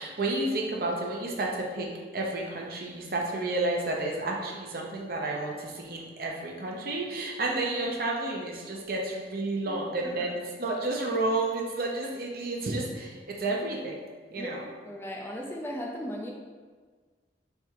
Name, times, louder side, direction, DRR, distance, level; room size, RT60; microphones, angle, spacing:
voice 1, 0.0-14.0 14.3-14.7, right 2 dB, 55° right, 0 dB, 0.7 m, -31 dB
voice 2, 10.0-10.4 14.4-14.5 14.8-16.3, equal, 15° left, -1 dB, 0.4 m, -37 dB
3.5 x 3.4 x 4.5 m, 1.5 s
head